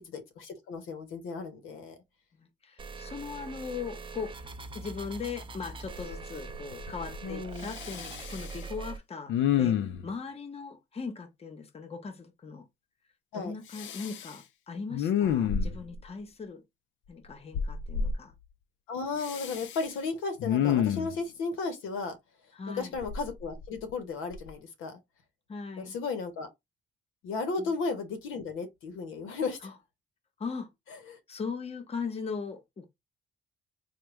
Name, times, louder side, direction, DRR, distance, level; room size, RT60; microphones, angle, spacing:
voice 1, 0.0-2.0 7.2-7.7 13.3-13.5 18.9-22.2 22.8-25.0 25.8-26.5 27.2-29.7 30.9-31.2, left 4 dB, 90° left, 0.8 m, -34 dB
voice 2, 2.3-4.4 4.7-12.6 13.3-16.6 17.1-18.3 22.5-22.9 25.5-25.9 27.6-27.7 29.6-29.7 30.4-30.7 31.3-32.8, left 5 dB, 30° left, 0.8 m, -39 dB
sound 1, 2.8-9.0, right 4 dB, 25° right, 0.5 m, -42 dB
Respiratory sounds, 5.2-5.3 5.7-6.2 6.5-7.2 7.6-8.6 9.3-10.1 13.7-14.3 14.9-16.0 17.5-18.1 19.2-19.9 20.4-21.2 23.0-23.9 24.3-24.5, left 8 dB, 70° left, 0.4 m, -29 dB
3.5 x 2.2 x 3.0 m
cardioid pair, 90°, 20 cm